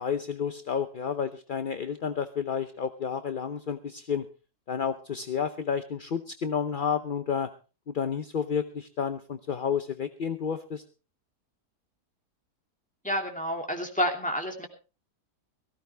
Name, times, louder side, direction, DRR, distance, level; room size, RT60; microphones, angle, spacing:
voice 1, 0.0-4.3 4.7-7.5 7.9-10.8, left 7 dB, 45° left, 9 dB, 0.7 m, -30 dB
voice 2, 13.0-14.7, equal, 5° left, 3 dB, 2.7 m, -29 dB
18.0 x 15.0 x 3.3 m, 0.33 s
omnidirectional pair, 1.7 m